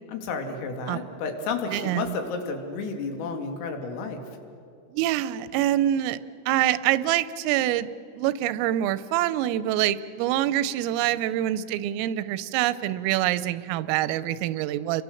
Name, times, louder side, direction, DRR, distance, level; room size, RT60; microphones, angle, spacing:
voice 1, 0.1-4.2, left 4 dB, 85° left, 4 dB, 5.0 m, -31 dB
voice 2, 1.7-2.2 4.9-6.2 6.5-7.9 8.2-15.0, right 13 dB, 85° right, 15 dB, 3.4 m, -25 dB
30.0 x 23.5 x 7.1 m, 2.6 s
omnidirectional pair, 5.8 m